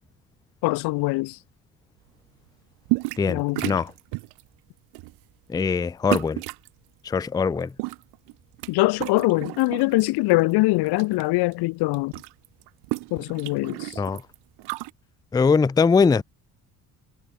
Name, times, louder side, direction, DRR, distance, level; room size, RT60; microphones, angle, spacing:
voice 1, 0.6-1.4 3.3-3.8 8.7-12.1 13.1-14.0, left 22 dB, 80° left, 0.7 m, -23 dB
sound 1, 2.9-3.3 3.6-4.4 4.9-5.2 6.1-6.7 7.6-8.7 9.0-10.1 10.5-11.2 11.5-11.6 11.8-14.9, right 25 dB, 85° right, 0.7 m, -31 dB
voice 2, 3.2-3.9 5.5-6.4 7.0-7.7 14.0-14.2 15.3-16.2, left 5 dB, 10° left, 0.4 m, -21 dB
supercardioid pair, 75°, 38 cm